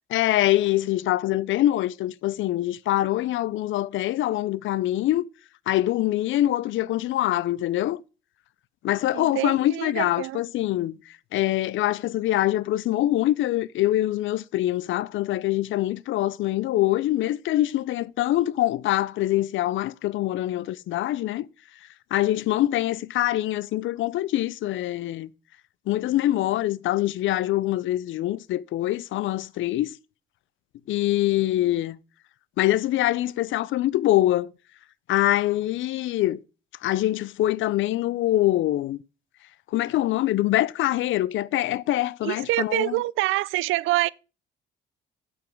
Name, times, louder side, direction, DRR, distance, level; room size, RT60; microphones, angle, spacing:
voice 1, 0.1-5.2 5.7-8.0 8.8-21.5 22.1-25.3 25.9-29.9 30.9-32.0 32.6-34.5 35.1-36.4 36.8-39.0 39.7-43.0, left 14 dB, 75° left, 0.5 m, -24 dB
voice 2, 9.1-10.4 42.2-44.1, right 18 dB, 85° right, 0.4 m, -26 dB
8.3 x 7.1 x 4.5 m
cardioid pair, 90°, 20 cm